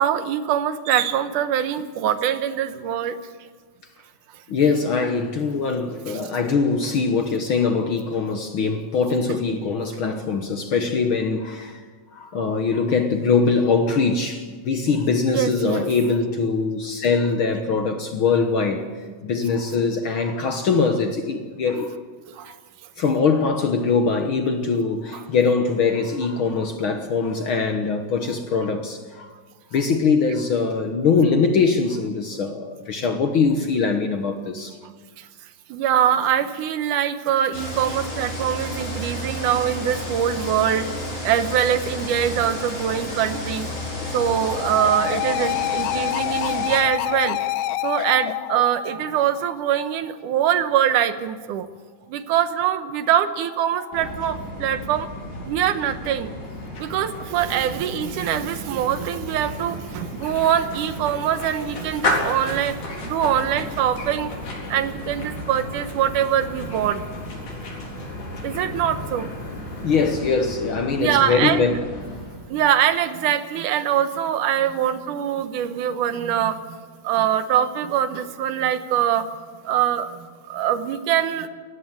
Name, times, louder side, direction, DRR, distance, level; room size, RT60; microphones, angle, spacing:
voice 1, 0.0-3.2 15.3-15.9 22.3-22.5 35.2-35.3 35.7-40.9 41.2-43.7 44.1-47.4 47.8-51.7 52.1-55.1 55.5-56.3 56.8-64.3 64.7-67.2 68.4-69.3 70.9-71.7 72.5-76.8 77.0-79.3 79.7-81.5, right 10 dB, 85° right, 2.6 m, -23 dB
voice 2, 4.5-11.8 12.1-18.9 19.2-21.9 22.5-22.6 23.0-29.3 29.7-34.7 69.8-71.9, left 4 dB, 55° left, 1.5 m, -22 dB
sound 1, 37.5-46.8, equal, 25° left, 6.7 m, -31 dB
sound 2, 39.4-39.8 43.4-49.8 53.4-54.2, left 13 dB, 75° left, 1.7 m, -28 dB
sound 3, 53.9-72.5, left 1 dB, 90° left, 5.5 m, -33 dB
18.5 x 15.0 x 9.7 m
omnidirectional pair, 3.5 m